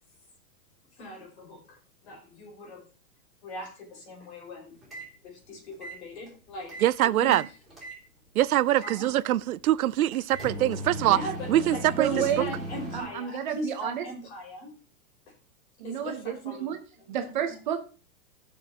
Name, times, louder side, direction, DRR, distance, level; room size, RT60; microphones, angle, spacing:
voice 1, 1.0-2.8 3.4-4.8 5.2-6.7 7.0-7.4 8.7-9.1 11.0-14.7 15.8-17.6, left 1 dB, 45° left, 4.8 m, -40 dB
sound 1, 4.8-5.1 5.7-6.9 7.2-8.0 8.8-9.0 10.1-13.0, equal, ahead, 4.7 m, -37 dB
voice 2, 6.8-7.4 8.4-11.2 11.5-12.1, right 14 dB, 75° right, 0.6 m, -23 dB
voice 3, 12.0-12.6 12.9-14.0 15.8-16.8 17.1-17.8, right 9 dB, 35° right, 0.9 m, -30 dB
14.5 x 6.3 x 4.1 m
supercardioid pair, 175°, 43 cm